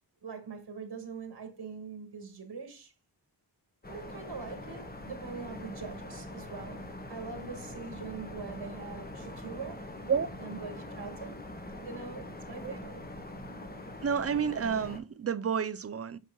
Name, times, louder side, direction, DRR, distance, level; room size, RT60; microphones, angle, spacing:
voice 1, 0.2-2.9 3.9-9.8 10.4-11.4 11.8-13.0, right 5 dB, 70° right, 1.6 m, -43 dB
sound 1, 3.8-15.0, left 1 dB, 20° left, 1.1 m, -43 dB
voice 2, 14.0-16.2, right 7 dB, 35° right, 0.4 m, -30 dB
8.1 x 6.0 x 2.3 m
wide cardioid pair, 135°, 42 cm